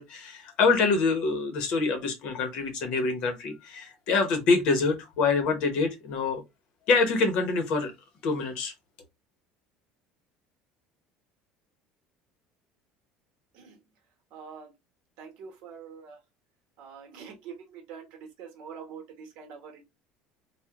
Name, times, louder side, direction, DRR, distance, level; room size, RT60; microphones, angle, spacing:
voice 1, 0.0-6.4 6.9-7.9 8.2-8.7, left 4 dB, 45° left, 0.8 m, -25 dB
voice 2, 14.3-14.7 15.2-16.2 16.8-19.8, right 6 dB, 55° right, 1.1 m, -45 dB
3.5 x 2.2 x 2.8 m
cardioid pair, 180°, 2 cm